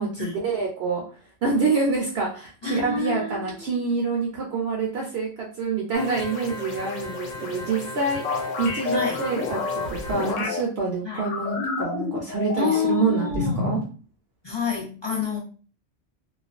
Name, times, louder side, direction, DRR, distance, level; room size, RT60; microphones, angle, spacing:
voice 1, 0.0-13.8, right 4 dB, 65° right, -2 dB, 0.7 m, -27 dB
voice 2, 2.6-3.7 8.9-9.2 11.0-11.3 12.6-13.6 14.4-15.4, left 6 dB, 40° left, -4 dB, 0.4 m, -28 dB
sound 1, 5.9-10.3, left 4 dB, 65° left, 0.8 m, -35 dB
sound 2, 8.2-10.6 11.1-13.0 13.3-13.9, left 4 dB, 90° left, 1.0 m, -29 dB
2.4 x 2.2 x 2.4 m, 0.39 s
omnidirectional pair, 1.3 m